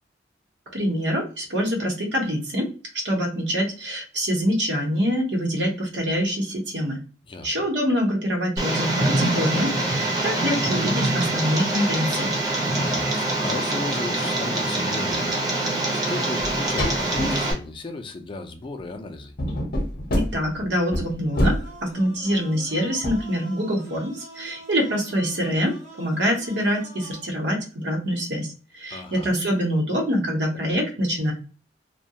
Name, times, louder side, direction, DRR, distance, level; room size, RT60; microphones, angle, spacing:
voice 1, 0.7-2.7 3.0-7.0 7.4-12.4 20.2-31.3, equal, 75° right, 0.9 m, -25 dB
Tick, 8.6-17.5, right 2 dB, 20° right, 0.6 m, -24 dB
voice 2, 12.8-19.3 28.9-29.3, left 3 dB, 30° left, 0.4 m, -36 dB
sound 1, 16.4-16.5 16.8-17.4 19.4-21.7 23.0-23.2, left 1 dB, 60° left, 0.7 m, -25 dB
sound 2, 21.3-27.3, right 1 dB, 50° right, 0.9 m, -45 dB
2.3 x 2.1 x 2.7 m
head